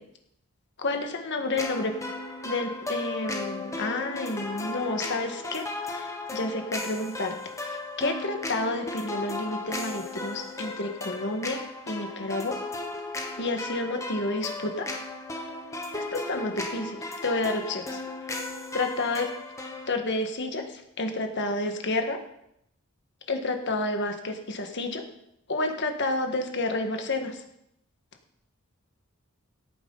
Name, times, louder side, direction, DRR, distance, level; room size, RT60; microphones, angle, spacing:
voice 1, 0.8-1.9 2.4-12.6 13.4-14.9 15.9-18.0 18.7-19.3 19.9-22.2 23.3-25.0 25.5-27.4, left 2 dB, 55° left, 5 dB, 1.6 m, -30 dB
sound 1, 1.6-19.9, left 2 dB, 15° left, 1.4 m, -36 dB
17.0 x 9.3 x 4.0 m, 0.76 s
head